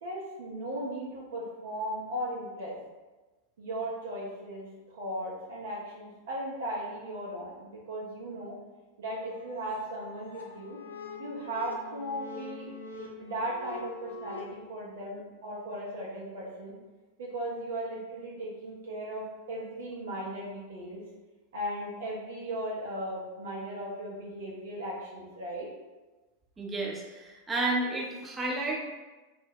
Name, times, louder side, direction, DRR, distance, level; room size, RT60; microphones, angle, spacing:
voice 1, 0.0-2.7 3.6-8.6 9.0-10.8 11.2-12.7 13.2-16.7 17.2-21.0 21.5-25.7, right 1 dB, 60° right, -4 dB, 0.5 m, -37 dB
sound 1, 9.1-14.4, left 3 dB, 75° left, 0.5 m, -44 dB
voice 2, 26.6-28.8, right 2 dB, 15° right, -3 dB, 0.5 m, -31 dB
2.2 x 2.1 x 3.4 m, 1.2 s
figure-of-eight pair, 90°, 0 cm